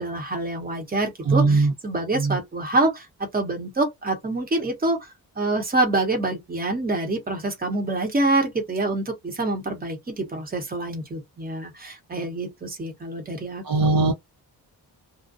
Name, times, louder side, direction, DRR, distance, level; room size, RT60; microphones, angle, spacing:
voice 1, 0.0-14.1, right 2 dB, 25° right, 1.0 m, -26 dB
voice 2, 1.3-1.7 2.2-2.4 13.6-14.1, right 3 dB, 60° right, 0.7 m, -19 dB
2.5 x 2.1 x 2.5 m
wide cardioid pair, 130°, 39 cm